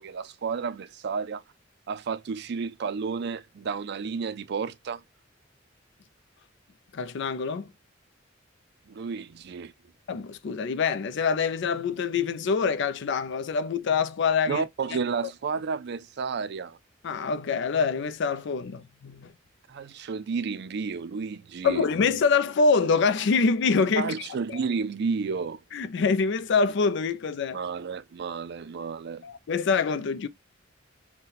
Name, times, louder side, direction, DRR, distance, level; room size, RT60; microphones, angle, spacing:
voice 1, 0.0-1.4 1.9-5.0 8.9-9.7 14.5-16.8 19.7-21.9 24.0-25.6 27.5-29.2, right 5 dB, 60° right, 0.4 m, -31 dB
voice 2, 6.9-7.7 10.1-14.6 14.9-15.3 17.0-19.3 21.6-24.6 25.7-27.6 29.2-30.3, left 5 dB, 65° left, 0.4 m, -25 dB
4.0 x 2.2 x 4.0 m
head